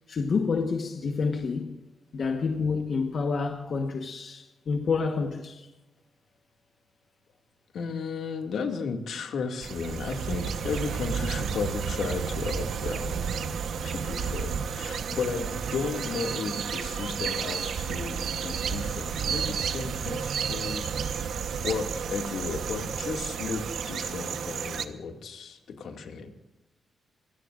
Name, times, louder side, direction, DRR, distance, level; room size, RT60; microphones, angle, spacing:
voice 1, 0.1-1.8 2.1-5.7, left 4 dB, 50° left, 1.3 m, -28 dB
voice 2, 7.7-13.2 13.8-21.3 21.6-26.3, left 5 dB, 75° left, 2.2 m, -34 dB
sound 1, 9.6-24.9, right 6 dB, 70° right, 1.1 m, -31 dB
25.5 x 17.0 x 2.6 m
cardioid pair, 130°, 0 cm